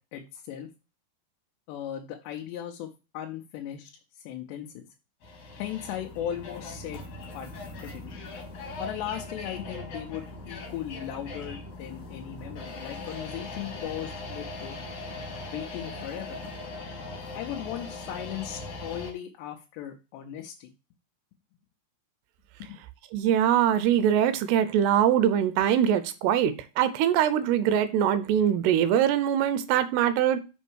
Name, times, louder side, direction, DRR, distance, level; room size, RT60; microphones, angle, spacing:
voice 1, 0.1-0.7 1.7-4.9 5.6-7.1 7.3-7.5 7.8-8.1 8.8-14.8 15.5-16.4 17.3-20.7 22.6-22.8, left 11 dB, 90° left, 3.1 m, -37 dB
sound 1, 5.2-19.1, left 2 dB, 50° left, 3.6 m, -40 dB
voice 2, 23.1-30.4, right 10 dB, 80° right, 2.8 m, -23 dB
6.6 x 5.5 x 6.2 m
omnidirectional pair, 4.8 m